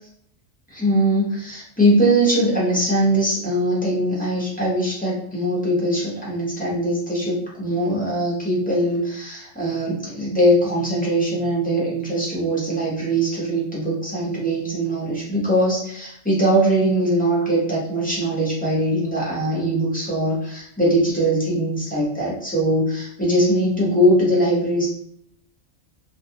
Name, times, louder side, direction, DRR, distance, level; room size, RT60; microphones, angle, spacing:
voice 1, 0.7-24.9, right 1 dB, 5° left, -7 dB, 0.8 m, -21 dB
2.5 x 2.4 x 2.7 m, 0.70 s
omnidirectional pair, 1.4 m